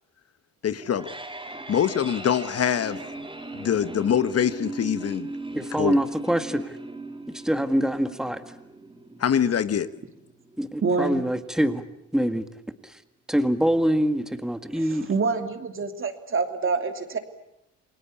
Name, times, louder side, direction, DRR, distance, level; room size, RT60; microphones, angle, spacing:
voice 1, 0.6-1.1 1.7-3.0 3.5-5.3 5.8-6.0 9.2-9.9, left 9 dB, 55° left, 12 dB, 1.3 m, -24 dB
sound 1, 0.7-11.7, right 2 dB, 15° right, 4.1 m, -39 dB
voice 2, 5.5-6.8 7.3-8.4 10.6-11.8 12.1-12.5 12.8-13.0 13.3-15.1, equal, ahead, 9 dB, 1.8 m, -24 dB
voice 3, 10.8-11.2 14.7-17.2, right 4 dB, 45° right, 7 dB, 3.0 m, -26 dB
28.5 x 20.5 x 8.6 m, 0.83 s
cardioid pair, 90°, 30 cm